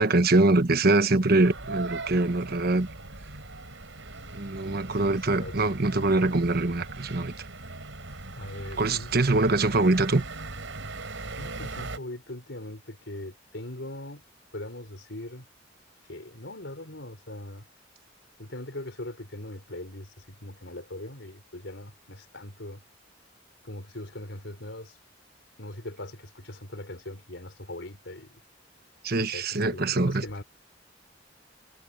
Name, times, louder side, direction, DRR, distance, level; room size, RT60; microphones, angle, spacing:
voice 1, 0.0-2.9 4.3-7.3 8.8-10.2 29.0-30.4, right 2 dB, 55° right, 1.2 m, -23 dB
sound 1, 1.4-12.0, right 3 dB, 85° right, 4.6 m, -40 dB
voice 2, 4.6-5.8 8.4-9.4 11.4-14.2 14.5-15.5 16.1-17.7 18.4-22.8 23.6-25.0 25.6-28.4 29.2-30.4, left 1 dB, 70° left, 5.2 m, -40 dB
head